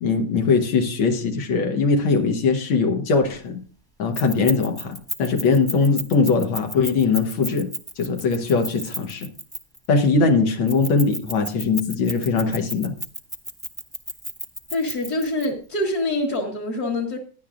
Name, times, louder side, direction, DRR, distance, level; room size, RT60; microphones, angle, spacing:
voice 1, 0.0-3.6 4.0-7.7 8.0-9.3 9.9-12.9, left 4 dB, 90° left, 3 dB, 2.0 m, -21 dB
Keys jangling, 4.1-9.9 10.7-15.5, right 1 dB, 5° left, 0.8 m, -32 dB
voice 2, 14.7-17.2, left 1 dB, 55° left, -3 dB, 2.1 m, -25 dB
17.5 x 10.5 x 2.5 m, 0.41 s
omnidirectional pair, 2.1 m